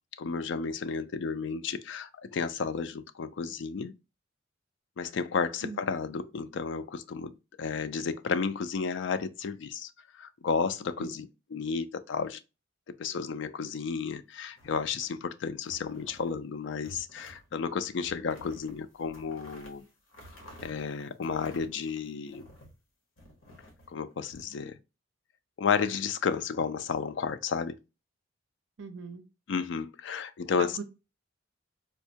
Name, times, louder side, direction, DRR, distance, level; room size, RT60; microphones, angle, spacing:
voice 1, 0.2-3.9 5.0-12.4 13.0-19.8 20.6-22.5 23.9-24.8 25.6-27.8 29.5-30.7, left 5 dB, 60° left, 0.3 m, -32 dB
sound 1, 14.5-15.2 15.6-16.4 16.8-17.5 17.8-22.8 23.2-24.4, equal, 80° left, 1.2 m, -52 dB
voice 2, 28.8-29.2 30.6-30.8, right 5 dB, 60° right, 0.5 m, -39 dB
4.4 x 2.1 x 2.8 m
head